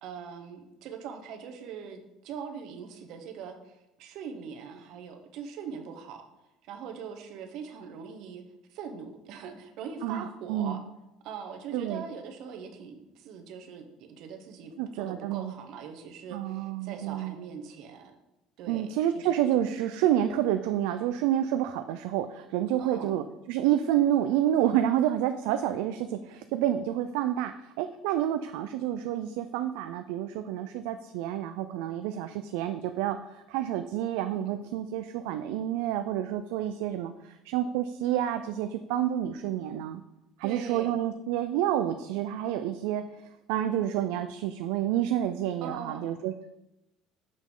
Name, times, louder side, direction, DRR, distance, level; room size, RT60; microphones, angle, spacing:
voice 1, 0.0-6.2 6.6-8.4 8.7-10.8 11.2-18.2 18.6-19.3 19.6-19.7 22.8-23.1 34.5-34.6 40.4-40.9 45.6-46.1, right 6 dB, 50° right, 6 dB, 0.9 m, -42 dB
voice 2, 10.0-10.8 11.7-12.0 14.8-15.5 16.3-17.3 18.7-40.0 40.4-46.5, right 11 dB, 85° right, 8 dB, 0.4 m, -29 dB
6.2 x 5.9 x 3.8 m, 0.91 s
cardioid pair, 175°, 0 cm